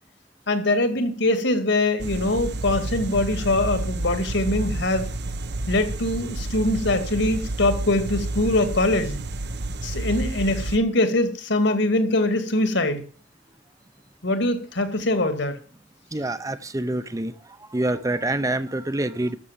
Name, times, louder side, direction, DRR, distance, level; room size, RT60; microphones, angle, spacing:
voice 1, 0.5-5.1 5.7-9.2 9.8-13.0 14.2-15.6, left 2 dB, 65° left, 9 dB, 2.3 m, -23 dB
sound 1, 2.0-10.8, right 2 dB, 60° right, 0.9 m, -30 dB
voice 2, 16.1-17.3 17.7-19.4, right 1 dB, 20° right, 13 dB, 0.7 m, -26 dB
13.0 x 6.8 x 7.4 m, 0.41 s
head